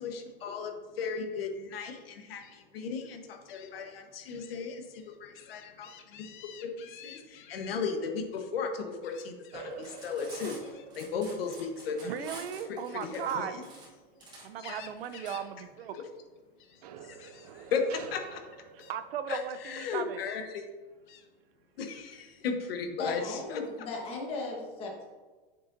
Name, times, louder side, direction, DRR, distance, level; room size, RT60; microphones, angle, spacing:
voice 1, 0.0-6.3 6.6-12.3 12.6-13.6 14.6-14.8 15.9-16.0 17.0-18.4 19.3-20.6 21.8-23.6, left 5 dB, 85° left, 5 dB, 1.2 m, -36 dB
Gull seagull, 2.4-2.6 3.5-3.7 4.3-4.5 4.9-7.7 9.0-9.7 10.6-10.9 12.8-14.0 14.4-15.5 15.8-16.0 16.4-16.8 17.2-17.5 18.2-18.4 18.8-19.0 19.7-20.4 21.1-21.3, left 9 dB, 55° left, 0.7 m, -52 dB
sound 1, 9.5-14.4 14.8-15.2 16.8-19.3, right 8 dB, 45° right, 0.4 m, -49 dB
Cutlery silverware, 9.7-15.3, right 2 dB, 15° right, 1.1 m, -48 dB
voice 2, 12.0-13.5 14.4-15.9 18.9-20.2, right 9 dB, 85° right, 11 dB, 0.7 m, -36 dB
voice 3, 23.0-25.1, left 3 dB, 20° left, 0 dB, 1.2 m, -37 dB
7.4 x 6.6 x 2.6 m, 1.3 s
supercardioid pair, 170°, 29 cm